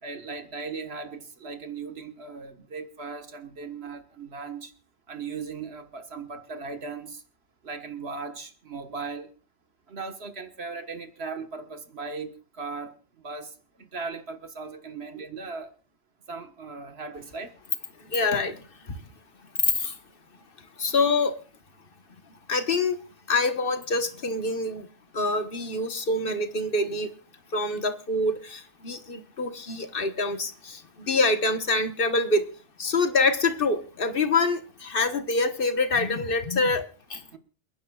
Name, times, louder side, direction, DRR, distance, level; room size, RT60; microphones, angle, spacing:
voice 1, 0.0-4.7 5.1-7.2 7.6-9.3 9.9-12.9 13.2-15.7 16.3-17.5 37.3-37.4, right 4 dB, 80° right, 7 dB, 1.7 m, -38 dB
voice 2, 18.1-18.6 19.6-19.9 20.8-21.3 22.5-23.0 23.3-24.9 25.1-27.1 27.5-30.8 31.1-32.4 32.8-36.8 37.1-37.2, left 3 dB, 60° left, 8 dB, 1.5 m, -25 dB
29.0 x 10.0 x 2.4 m, 0.38 s
omnidirectional pair, 1.0 m